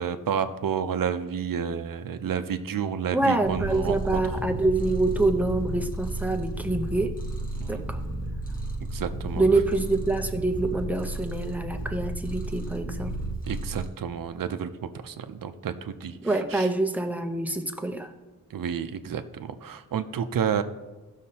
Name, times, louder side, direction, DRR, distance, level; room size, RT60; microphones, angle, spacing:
voice 1, 0.0-4.2 7.6-7.8 8.8-9.4 13.5-16.2 16.5-16.7 18.5-20.6, right 7 dB, 70° right, 9 dB, 0.6 m, -30 dB
voice 2, 3.1-7.2 7.7-8.0 9.4-13.1 16.2-18.1, right 2 dB, 5° right, 5 dB, 0.6 m, -26 dB
Purr, 3.4-13.9, right 2 dB, 25° left, 1.2 m, -33 dB
17.0 x 6.5 x 2.8 m, 1.2 s
wide cardioid pair, 175°, 34 cm